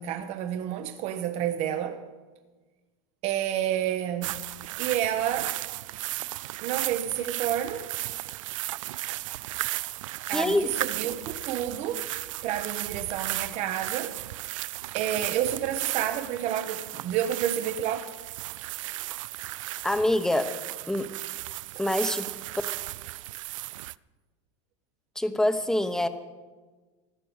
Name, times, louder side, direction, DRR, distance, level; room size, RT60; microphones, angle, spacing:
voice 1, 0.0-2.0 3.2-4.4 4.8-5.6 6.6-7.9 10.3-12.1 12.4-14.2 14.9-18.0, right 10 dB, 40° right, 1.0 m, -29 dB
sound 1, 4.2-23.9, right 17 dB, 85° right, 0.4 m, -35 dB
voice 2, 10.3-10.7 19.8-20.5 20.9-21.1 21.8-22.3 25.2-26.1, left 1 dB, 5° left, 1.0 m, -25 dB
15.5 x 11.5 x 8.1 m
supercardioid pair, 145°, 16 cm